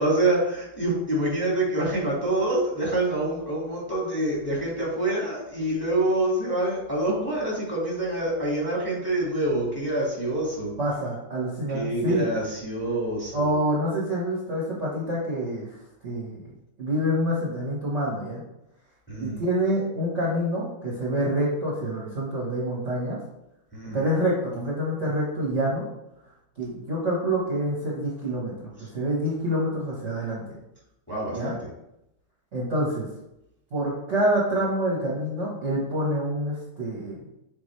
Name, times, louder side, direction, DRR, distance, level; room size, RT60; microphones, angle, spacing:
voice 1, 0.0-10.7 11.7-13.6 19.1-19.4 23.7-24.0 31.1-31.6, right 1 dB, 5° left, -5 dB, 1.9 m, -26 dB
voice 2, 10.8-12.3 13.3-15.7 16.0-16.5 16.8-18.4 19.2-23.2 23.9-25.9 26.6-28.7 28.9-30.6 31.3-31.5 32.5-33.1 33.7-37.2, equal, 40° right, -5 dB, 1.4 m, -27 dB
7.1 x 4.7 x 3.2 m, 0.87 s
omnidirectional pair, 2.2 m